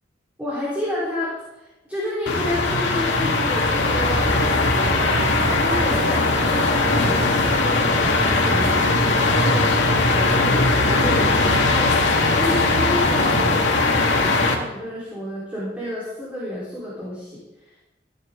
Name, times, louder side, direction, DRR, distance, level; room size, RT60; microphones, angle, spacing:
voice 1, 0.4-1.4 1.6-5.2 5.6-8.9 9.4-17.4, left 1 dB, 10° right, -9 dB, 4.1 m, -30 dB
sound 1, 2.3-14.5, left 2 dB, 90° left, 2.0 m, -19 dB
15.0 x 11.5 x 3.8 m, 0.99 s
head